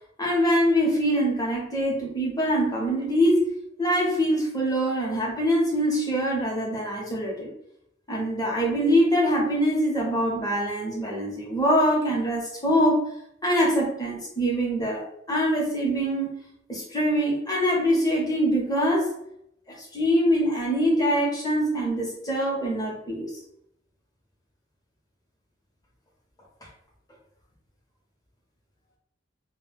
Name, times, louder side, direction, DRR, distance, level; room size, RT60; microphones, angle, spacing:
voice 1, 0.2-3.4 3.8-7.5 8.1-13.1 13.4-16.3 16.7-19.1 19.9-23.3, equal, 20° left, -3 dB, 0.8 m, -24 dB
2.2 x 2.1 x 3.3 m, 0.75 s
head